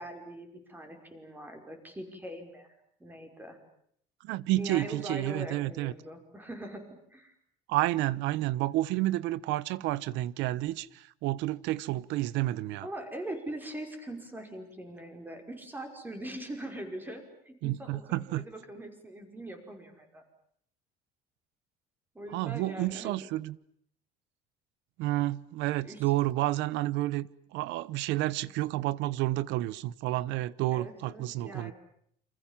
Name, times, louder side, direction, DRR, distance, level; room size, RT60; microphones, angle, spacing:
voice 1, 0.0-2.7 3.0-3.6 4.6-7.3 12.8-20.2 22.1-23.2 25.8-26.0 30.7-31.7, right 1 dB, 10° right, 5.6 m, -42 dB
voice 2, 4.2-5.9 7.7-12.9 17.6-18.4 22.3-23.6 25.0-27.3 27.5-31.7, right 16 dB, 75° right, 1.1 m, -30 dB
29.0 x 26.0 x 7.4 m
cardioid pair, 150°, 19 cm